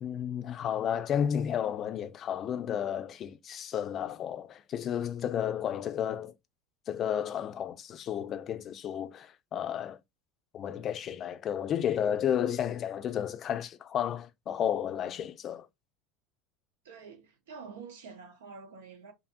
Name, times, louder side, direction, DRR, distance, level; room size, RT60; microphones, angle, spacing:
voice 1, 0.0-6.3 6.9-10.0 10.5-15.7, left 9 dB, 40° left, 0.4 m, -32 dB
voice 2, 16.8-19.1, right 5 dB, 90° right, 0.8 m, -47 dB
2.6 x 2.5 x 2.5 m
supercardioid pair, 105°, 0 cm